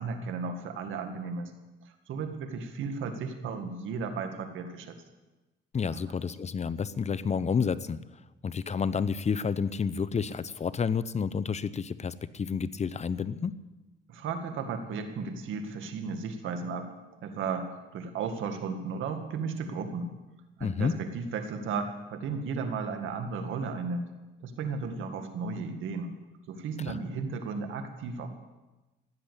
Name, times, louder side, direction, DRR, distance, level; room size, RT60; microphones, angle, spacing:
voice 1, 0.0-1.5 1.8-5.0 5.9-6.0 14.1-16.9 17.2-20.1 20.6-24.1 24.4-26.1 26.5-28.3, right 5 dB, 80° right, 7 dB, 2.0 m, -34 dB
voice 2, 5.7-8.0 8.4-13.6 20.6-21.0 26.8-27.0, left 6 dB, 35° left, 15 dB, 0.7 m, -30 dB
15.5 x 10.5 x 8.2 m, 1.1 s
cardioid pair, 90°, 20 cm